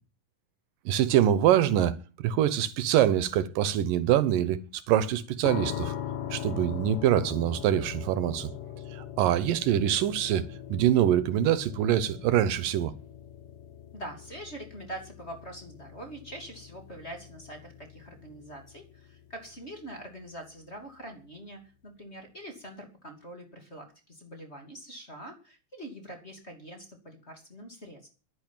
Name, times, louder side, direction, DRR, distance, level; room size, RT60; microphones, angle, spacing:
voice 1, 0.9-5.9 6.3-8.5 8.9-10.4 10.7-12.9, right 11 dB, 75° right, 2.5 m, -24 dB
sound 1, 5.4-20.3, left 10 dB, 70° left, 2.7 m, -41 dB
voice 2, 13.9-28.1, right 1 dB, 20° left, 2.7 m, -44 dB
11.5 x 10.5 x 9.0 m
omnidirectional pair, 4.0 m